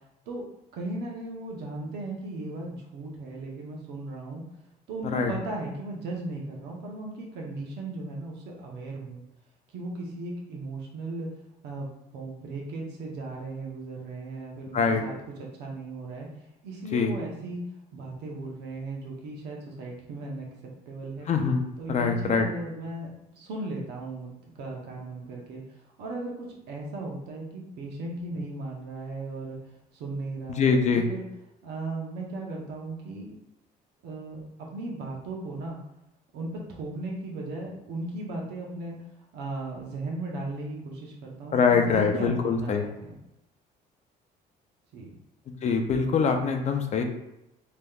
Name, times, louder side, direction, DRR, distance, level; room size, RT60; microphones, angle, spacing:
voice 1, 0.7-4.4 4.9-9.2 9.7-11.3 11.6-15.1 15.4-16.3 16.6-20.5 20.9-21.3 21.8-24.3 24.5-25.6 26.0-29.6 29.9-31.2 31.6-33.4 34.0-35.8 36.3-39.0 39.3-43.1 44.9-45.1, right 2 dB, 80° right, -1 dB, 0.9 m, -36 dB
voice 2, 21.3-21.6 21.9-22.5 30.5-31.1 41.5-42.8 45.6-47.0, left 5 dB, 45° left, 4 dB, 0.5 m, -23 dB
3.4 x 2.9 x 2.3 m, 0.87 s
cardioid pair, 110°, 17 cm